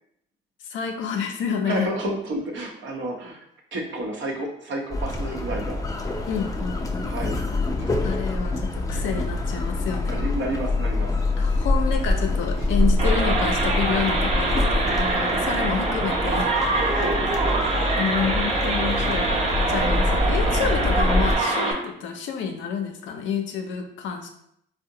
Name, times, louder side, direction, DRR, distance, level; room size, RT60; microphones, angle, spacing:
voice 1, 0.6-2.0 6.3-7.1 8.0-10.2 11.4-16.5 18.0-24.3, left 6 dB, 75° left, 4 dB, 0.4 m, -29 dB
voice 2, 1.6-3.4 3.7-5.8 7.1-7.4 7.8-8.4 10.0-11.1 14.8-15.1 16.9-17.6 17.9-18.4 20.4-20.7, right 1 dB, 70° right, 0 dB, 0.8 m, -31 dB
sound 1, 4.9-21.4, left 2 dB, 15° left, 0.4 m, -25 dB
sound 2, 13.0-21.7, right 3 dB, 30° right, 0.7 m, -24 dB
3.7 x 2.1 x 2.7 m, 0.73 s
cardioid pair, 90°, 20 cm